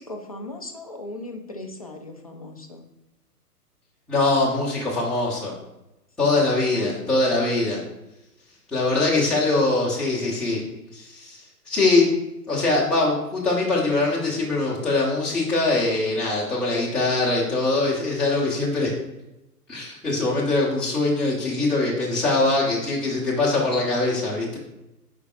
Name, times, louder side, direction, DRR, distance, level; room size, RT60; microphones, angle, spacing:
voice 1, 0.0-2.8 6.2-7.0, left 2 dB, 25° left, 3 dB, 0.4 m, -38 dB
voice 2, 4.1-5.5 6.2-7.8 8.7-10.6 10.9-12.1 12.5-18.9 19.7-24.6, left 2 dB, ahead, -8 dB, 1.0 m, -22 dB
8.3 x 5.1 x 2.5 m, 0.92 s
figure-of-eight pair, 125°, 47 cm